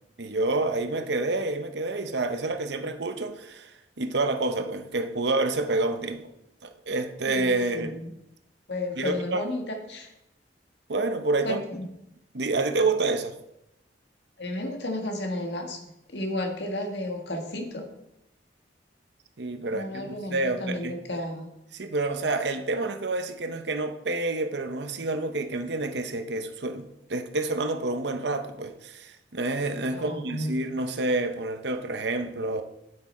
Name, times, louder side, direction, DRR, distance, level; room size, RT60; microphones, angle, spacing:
voice 1, 0.2-6.3 6.6-8.0 9.0-9.4 10.9-11.6 12.3-13.4 19.4-21.0 21.7-32.6, right 2 dB, 70° right, 0.9 m, -28 dB
voice 2, 7.2-8.1 8.7-10.1 11.4-11.8 14.4-17.9 19.7-21.5 29.9-30.5, left 1 dB, 75° left, 1.7 m, -33 dB
8.8 x 8.3 x 4.3 m
head